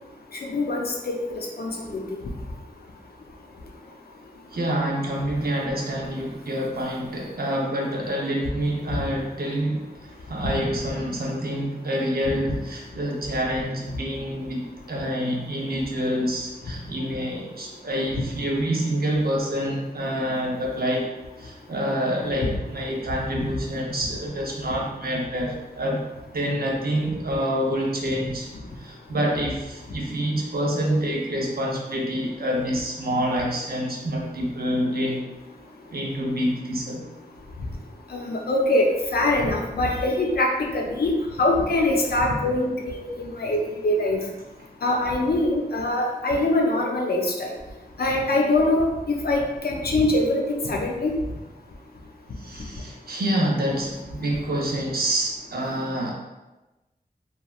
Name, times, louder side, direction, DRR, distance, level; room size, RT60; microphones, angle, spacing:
voice 1, 0.5-1.1 1.6-2.0 12.2-12.3 38.1-44.2 44.8-47.5 48.0-51.2, left 2 dB, 70° left, -1 dB, 0.5 m, -23 dB
voice 2, 4.5-21.1 21.4-26.0 26.3-28.5 28.8-35.2 35.9-37.1 52.4-56.1, equal, 65° right, -2 dB, 0.6 m, -27 dB
2.9 x 2.3 x 2.3 m, 1.1 s
wide cardioid pair, 80°, 17 cm